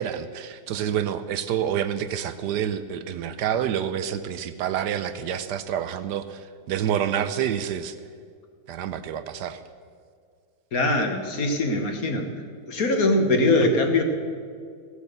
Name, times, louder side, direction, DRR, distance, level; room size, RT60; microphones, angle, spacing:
voice 1, 0.0-8.0 8.7-9.6, right 9 dB, 70° right, 12 dB, 1.1 m, -28 dB
voice 2, 10.7-12.3 12.7-14.0, left 2 dB, 50° left, 4 dB, 1.6 m, -22 dB
16.5 x 8.1 x 6.7 m, 2.1 s
omnidirectional pair, 2.1 m